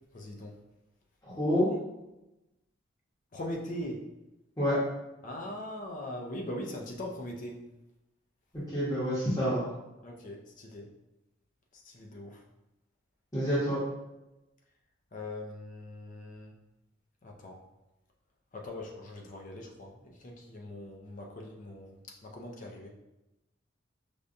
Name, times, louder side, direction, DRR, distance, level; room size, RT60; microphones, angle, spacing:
voice 1, 0.1-0.5 3.3-4.0 5.2-7.6 10.0-10.9 11.7-12.4 15.1-16.5 17.2-17.6 18.5-22.9, left 1 dB, 40° left, 1 dB, 0.5 m, -41 dB
voice 2, 1.2-1.7 4.6-4.8 8.5-9.6 13.3-13.8, equal, 20° left, -11 dB, 1.0 m, -28 dB
5.0 x 2.2 x 2.6 m, 0.97 s
head